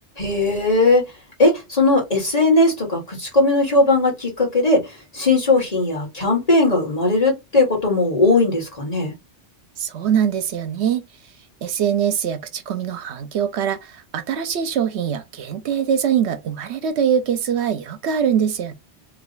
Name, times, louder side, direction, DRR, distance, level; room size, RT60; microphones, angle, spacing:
voice 1, 0.2-1.0 1.4-9.1, left 2 dB, 35° left, 1.6 m, -18 dB
voice 2, 9.8-11.0 11.6-18.7, right 8 dB, 75° right, 0.9 m, -23 dB
3.1 x 2.3 x 3.8 m
omnidirectional pair, 1.2 m